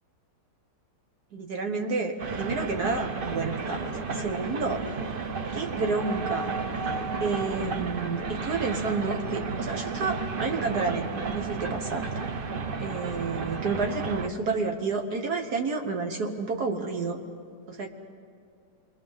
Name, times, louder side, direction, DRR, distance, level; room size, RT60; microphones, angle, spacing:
voice 1, 1.3-4.8 5.5-6.5 7.2-12.1 12.8-17.2 17.7-17.9, right 4 dB, 75° right, 3 dB, 1.8 m, -30 dB
sound 1, 2.2-14.3, right 4 dB, 40° right, 0.9 m, -32 dB
28.0 x 22.5 x 5.6 m, 2.4 s
omnidirectional pair, 1.7 m